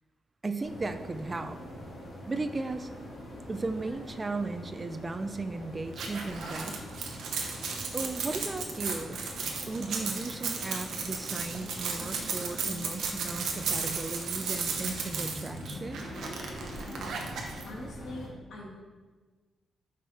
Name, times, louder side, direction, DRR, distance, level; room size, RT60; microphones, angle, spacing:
voice 1, 0.4-1.6 2.3-2.9 3.5-6.8 7.9-9.2 9.7-16.0, right 3 dB, 25° right, 9 dB, 0.4 m, -36 dB
sound 1, 0.6-18.3, equal, 55° left, 1.9 m, -43 dB
sound 2, 5.9-17.6, right 5 dB, 80° right, 0.9 m, -35 dB
voice 2, 17.6-18.8, left 1 dB, 70° left, -1 dB, 1.5 m, -44 dB
5.6 x 5.0 x 4.1 m, 1.3 s
cardioid pair, 95°, 0 cm